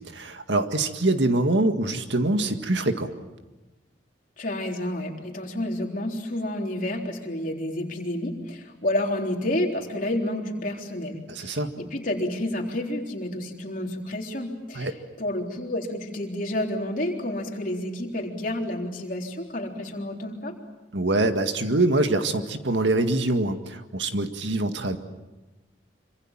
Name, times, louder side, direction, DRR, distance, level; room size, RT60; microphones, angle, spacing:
voice 1, 0.0-3.1 11.3-11.7 14.8-14.9 20.9-25.0, right 2 dB, 75° right, 7 dB, 1.9 m, -24 dB
voice 2, 4.4-20.5, left 1 dB, 45° left, 1 dB, 3.8 m, -30 dB
26.5 x 25.5 x 7.5 m, 1.1 s
head